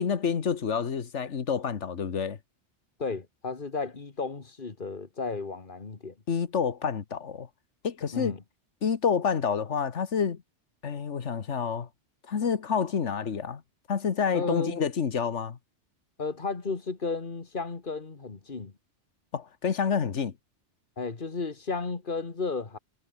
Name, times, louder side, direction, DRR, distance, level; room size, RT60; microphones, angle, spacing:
voice 1, 0.0-2.4 6.3-7.5 7.8-8.4 8.8-10.4 10.8-11.9 12.3-13.6 13.9-15.6 19.3-20.3, left 6 dB, 85° left, 1.7 m, -28 dB
voice 2, 3.0-6.1 8.1-8.4 14.3-14.8 16.2-18.7 21.0-22.8, left 4 dB, 45° left, 2.1 m, -33 dB
omnidirectional pair, 1.2 m